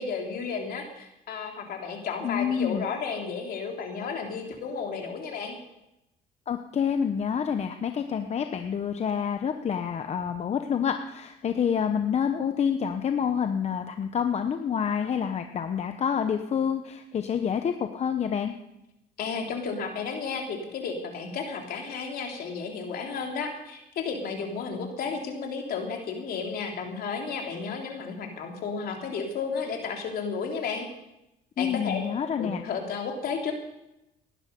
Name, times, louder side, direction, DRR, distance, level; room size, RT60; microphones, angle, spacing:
voice 1, 0.0-5.6 19.2-30.9 31.6-32.0 32.4-33.5, left 5 dB, 65° left, 2 dB, 3.3 m, -33 dB
voice 2, 2.2-2.9 6.5-18.5 31.6-32.6, left 7 dB, 40° left, 7 dB, 1.0 m, -28 dB
19.0 x 11.5 x 5.3 m, 0.88 s
cardioid pair, 110°, 17 cm